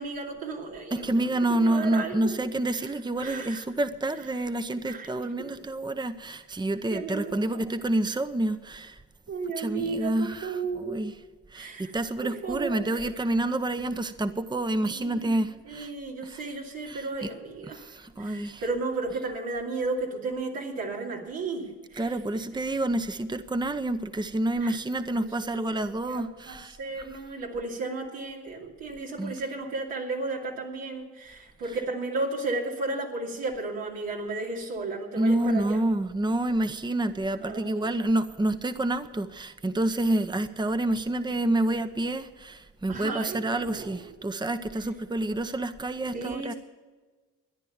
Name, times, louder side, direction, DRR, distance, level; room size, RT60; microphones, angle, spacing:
voice 1, 0.0-1.1 1.5-2.3 2.7-2.9 3.2-3.6 4.9-5.1 5.4-5.6 6.9-7.6 9.3-11.1 11.5-11.9 12.2-12.9 14.8-15.4 15.6-22.1 22.3-22.4 24.6-24.8 25.2-35.8 37.4-38.0 42.9-44.0 46.1-46.5, right 3 dB, 85° right, -2 dB, 2.8 m, -34 dB
voice 2, 0.9-9.0 9.6-11.1 11.5-15.9 16.2-16.5 16.8-17.3 17.7-18.6 22.0-27.1 29.2-29.4 35.2-46.5, right 1 dB, 15° right, 10 dB, 0.9 m, -28 dB
14.0 x 10.5 x 7.2 m, 1.3 s
supercardioid pair, 50°, 34 cm